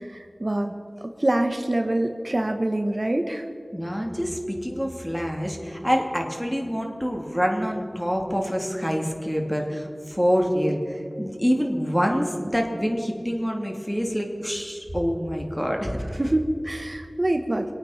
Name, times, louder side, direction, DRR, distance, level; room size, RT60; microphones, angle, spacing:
voice 1, 0.1-0.7 1.0-3.4 16.2-17.7, right 1 dB, 55° right, 5 dB, 1.0 m, -25 dB
voice 2, 3.7-16.2, equal, 5° left, 1 dB, 2.5 m, -26 dB
25.0 x 9.0 x 5.7 m, 2.4 s
wide cardioid pair, 40°, 0 cm